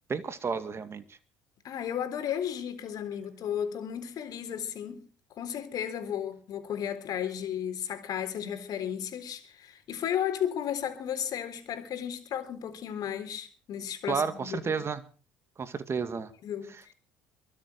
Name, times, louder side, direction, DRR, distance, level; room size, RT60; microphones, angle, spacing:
voice 1, 0.1-1.2 14.1-15.0 15.6-16.3 16.7-16.9, right 5 dB, 35° right, 2.2 m, -32 dB
voice 2, 1.6-5.1 5.4-14.7 16.4-16.7, left 9 dB, 55° left, 3.7 m, -34 dB
23.0 x 7.7 x 6.5 m
supercardioid pair, 75°, 7 cm